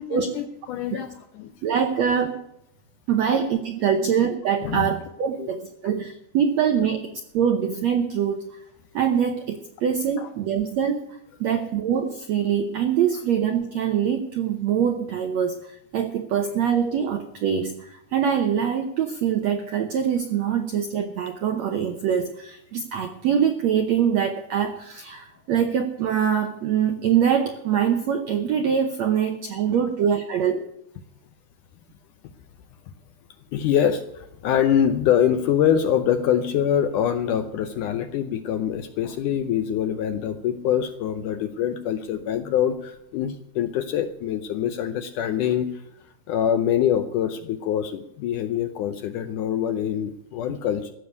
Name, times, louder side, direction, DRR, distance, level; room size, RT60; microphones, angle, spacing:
voice 1, 0.0-1.5 4.0-4.1 4.6-4.9 5.4-5.5 10.2-10.3 33.5-45.8 46.3-50.9, left 9 dB, 75° left, 9 dB, 1.9 m, -24 dB
voice 2, 1.6-2.3 3.1-8.6 8.9-30.7, right 8 dB, 80° right, 6 dB, 1.6 m, -24 dB
15.0 x 7.0 x 9.5 m, 0.81 s
omnidirectional pair, 4.4 m